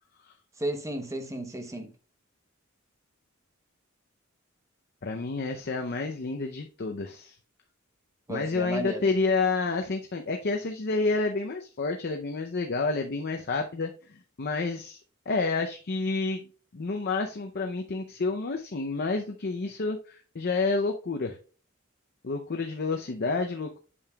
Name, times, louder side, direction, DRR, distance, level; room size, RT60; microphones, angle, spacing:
voice 1, 0.6-1.9 8.3-9.1, right 1 dB, 15° right, 0.8 m, -33 dB
voice 2, 5.0-7.4 8.3-15.0 15.3-16.5 16.7-21.4 22.2-23.8, left 3 dB, 50° left, 0.6 m, -29 dB
8.5 x 6.8 x 2.3 m
head